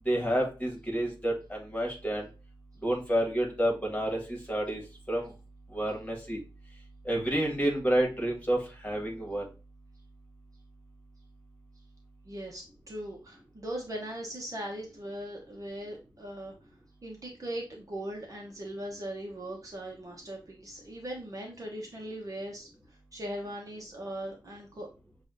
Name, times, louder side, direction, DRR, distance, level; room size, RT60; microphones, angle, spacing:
voice 1, 0.1-2.3 2.8-4.8 5.1-5.3 5.7-6.4 7.1-9.4, right 1 dB, 15° left, 0 dB, 1.7 m, -29 dB
voice 2, 12.2-16.5 17.0-24.9, right 1 dB, 45° right, 0 dB, 0.9 m, -39 dB
6.8 x 2.4 x 2.6 m, 0.32 s
wide cardioid pair, 105°, 8 cm